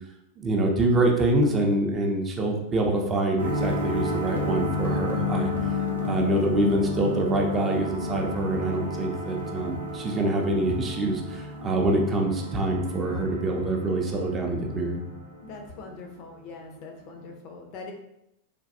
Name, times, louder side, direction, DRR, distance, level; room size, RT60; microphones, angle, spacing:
voice 1, 0.4-5.5 6.0-15.0, right 2 dB, 25° right, 1 dB, 0.5 m, -25 dB
sound 1, 3.4-16.1, left 3 dB, 75° right, 0.5 m, -31 dB
voice 2, 15.4-17.9, left 3 dB, 40° left, 2 dB, 0.5 m, -42 dB
3.2 x 2.2 x 2.6 m, 0.81 s
figure-of-eight pair, 90°, 0 cm